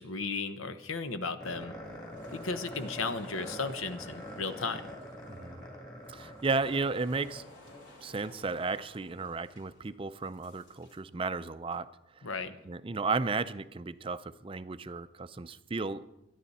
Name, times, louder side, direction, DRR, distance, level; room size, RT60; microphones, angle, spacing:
voice 1, 0.0-1.7 2.3-4.8 12.2-12.6, left 4 dB, 90° left, 10 dB, 1.0 m, -35 dB
sound 1, 1.4-7.8, equal, 20° left, 3.0 m, -44 dB
sound 2, 1.8-11.0, left 1 dB, 65° left, 4.3 m, -56 dB
voice 2, 5.3-5.6 6.1-7.4 8.0-11.9 12.7-16.0, right 4 dB, 25° right, 13 dB, 0.4 m, -34 dB
23.5 x 10.5 x 4.2 m, 0.90 s
head